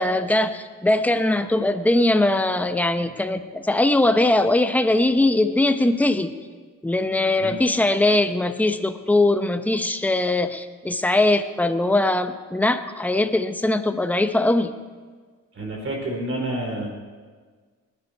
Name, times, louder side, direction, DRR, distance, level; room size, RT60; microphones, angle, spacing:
voice 1, 0.0-6.3 6.8-14.7, left 2 dB, 5° left, 8 dB, 0.8 m, -21 dB
voice 2, 15.5-16.9, right 1 dB, 45° right, 0 dB, 4.6 m, -28 dB
19.5 x 10.0 x 4.6 m, 1.5 s
cardioid pair, 90°, 30 cm